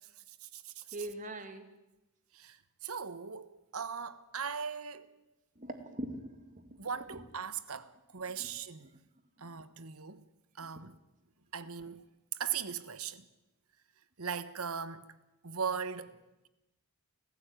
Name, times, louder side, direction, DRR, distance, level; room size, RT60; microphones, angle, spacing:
voice 1, 0.4-0.8 2.3-2.6 2.8-5.1 6.8-8.9 9.4-10.2 10.6-11.0 11.5-12.0 12.4-13.2 14.2-15.1 15.4-16.2, right 6 dB, 80° right, 1.4 m, -39 dB
voice 2, 0.9-1.7 5.6-6.8 7.1-7.2 8.4-8.5 9.4-9.6 10.6-10.9, right 1 dB, 35° right, 2.3 m, -43 dB
29.5 x 15.0 x 9.2 m
head